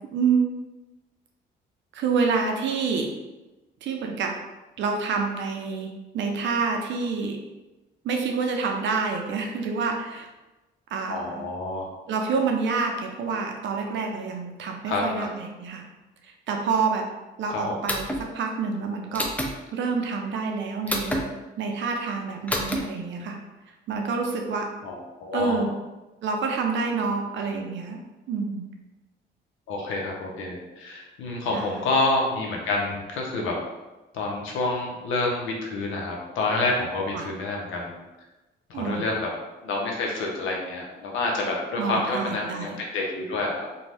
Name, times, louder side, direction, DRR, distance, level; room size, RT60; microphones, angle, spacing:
voice 1, 0.1-0.5 1.9-3.1 3.8-4.3 4.8-7.4 8.0-10.3 10.9-11.4 12.1-15.8 16.2-17.0 17.4-19.3 19.7-21.2 21.6-23.4 23.9-24.7 25.3-25.7 26.2-28.0 28.3-28.7 31.5-31.9 37.1-37.3 38.7-39.1 41.8-42.8, right 5 dB, 70° right, 2 dB, 0.6 m, -27 dB
voice 2, 11.1-11.9 14.9-15.3 17.5-17.8 24.8-25.6 29.7-33.6 34.1-37.9 38.7-39.3 39.6-43.7, left 2 dB, 80° left, -1 dB, 0.7 m, -28 dB
sound 1, 17.9-18.2 19.1-19.5 20.9-21.2 22.5-22.8, equal, 5° left, 0.4 m, -27 dB
2.6 x 2.2 x 3.3 m, 1.1 s
cardioid pair, 90°, 20 cm